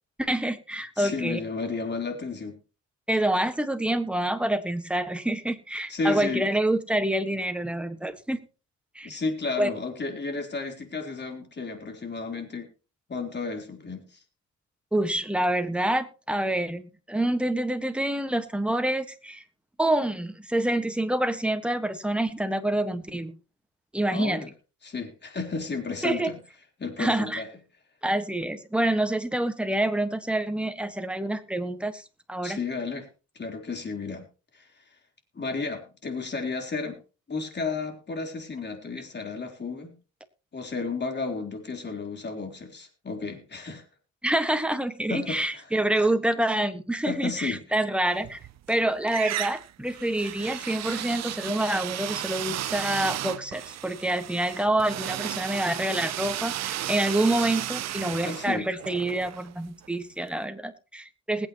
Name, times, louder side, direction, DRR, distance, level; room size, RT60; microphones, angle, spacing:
voice 1, 0.2-1.4 3.1-8.4 8.9-9.1 9.6-9.7 14.9-19.4 19.8-23.3 23.9-24.4 26.0-26.3 27.0-27.4 28.0-32.6 44.2-48.4 48.7-61.5, right 1 dB, 5° right, 8 dB, 1.5 m, -27 dB
voice 2, 1.0-2.6 5.9-6.5 9.0-12.7 13.1-14.2 24.1-24.5 24.8-26.4 26.8-27.5 32.4-33.1 33.4-34.3 34.5-34.7 35.3-37.0 37.3-39.9 40.5-43.8 45.1-45.7 47.0-47.6 58.1-58.7, left 4 dB, 35° left, 4 dB, 3.7 m, -32 dB
sound 1, 48.2-48.8 49.1-60.0, right 13 dB, 60° right, 0.7 m, -34 dB
20.5 x 8.7 x 3.0 m, 0.33 s
cardioid pair, 90°, 30 cm